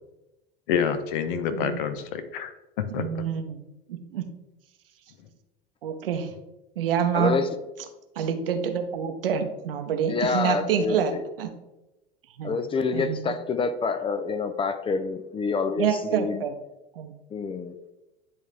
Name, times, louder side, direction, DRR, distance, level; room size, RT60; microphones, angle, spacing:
voice 1, 0.7-2.5 2.8-3.2, left 7 dB, 60° left, 10 dB, 0.8 m, -28 dB
voice 2, 3.0-3.6 3.9-4.2 5.8-6.3 6.8-7.4 8.2-11.1 11.4-11.5 12.4-12.5 12.9-13.3 15.8-16.5 16.9-17.1, right 8 dB, 70° right, 7 dB, 0.8 m, -27 dB
voice 3, 7.1-7.5 10.1-11.2 12.4-16.4 17.3-17.8, left 4 dB, 20° left, 10 dB, 0.5 m, -27 dB
10.0 x 3.6 x 3.2 m, 1.0 s
figure-of-eight pair, 80°, 29 cm